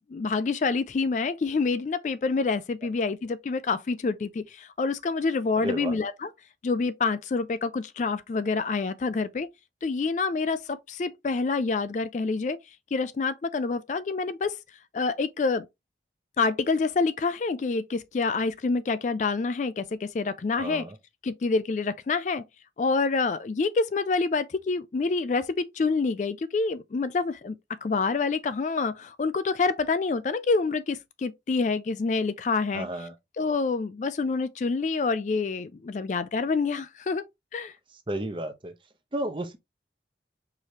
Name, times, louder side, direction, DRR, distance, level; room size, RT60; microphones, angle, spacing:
voice 1, 0.1-6.3 6.6-9.5 9.8-12.6 12.9-14.6 14.9-15.7 16.4-20.9 21.2-22.4 22.8-32.9 33.4-37.2 37.5-37.7, left 4 dB, 45° left, 0.3 m, -27 dB
voice 2, 5.6-5.9 20.6-21.0 32.7-33.1 38.1-38.7 39.1-39.6, right 1 dB, 30° right, 0.7 m, -32 dB
4.8 x 3.1 x 2.8 m
head